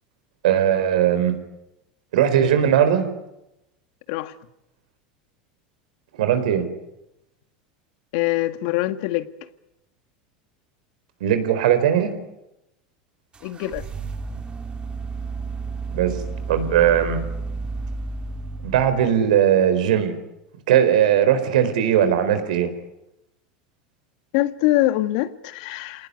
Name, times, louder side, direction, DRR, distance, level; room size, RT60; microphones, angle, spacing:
voice 1, 0.4-1.3 2.1-3.1 6.2-6.6 11.2-12.1 15.9-16.1 16.5-17.2 18.6-20.1 20.7-22.7, right 9 dB, 80° right, 10 dB, 4.4 m, -19 dB
voice 2, 8.1-9.3 13.4-13.8 24.3-26.1, left 16 dB, 65° left, 11 dB, 1.6 m, -23 dB
sound 1, 13.3-19.2, right 4 dB, 25° right, 2.5 m, -32 dB
27.5 x 19.0 x 9.7 m, 0.90 s
hypercardioid pair, 105°, 4 cm